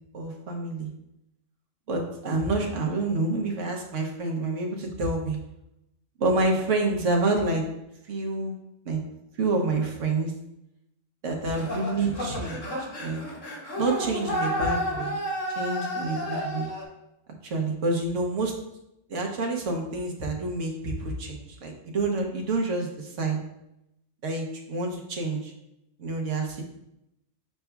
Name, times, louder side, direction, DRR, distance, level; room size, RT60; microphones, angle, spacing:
voice 1, 0.1-0.9 1.9-5.4 6.2-7.6 8.1-8.6 8.8-9.0 9.4-10.3 11.2-12.6 13.0-13.2 13.8-15.2 15.6-16.7 17.4-18.5 19.1-23.4 24.2-25.5 26.0-26.6, right 2 dB, 70° right, 1 dB, 1.4 m, -28 dB
sound 1, 11.5-16.8, equal, 70° left, 2.3 m, -31 dB
7.4 x 5.8 x 2.3 m, 0.86 s
omnidirectional pair, 1.3 m